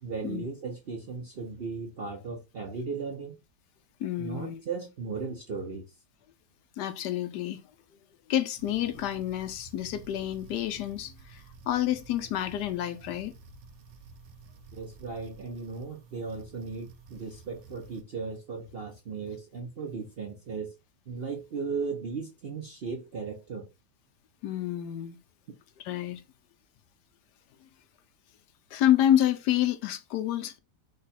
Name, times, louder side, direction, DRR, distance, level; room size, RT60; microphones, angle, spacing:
voice 1, 0.0-3.4 4.2-5.9 14.7-20.7 21.1-23.7, right 4 dB, 55° right, 0.7 m, -36 dB
voice 2, 4.0-4.6 6.8-7.6 8.3-13.3 24.4-25.2 25.8-26.2 28.7-30.6, left 11 dB, 75° left, 1.1 m, -28 dB
sound 1, 8.6-18.0, right 4 dB, 85° right, 1.3 m, -52 dB
5.0 x 2.3 x 4.1 m
omnidirectional pair, 1.9 m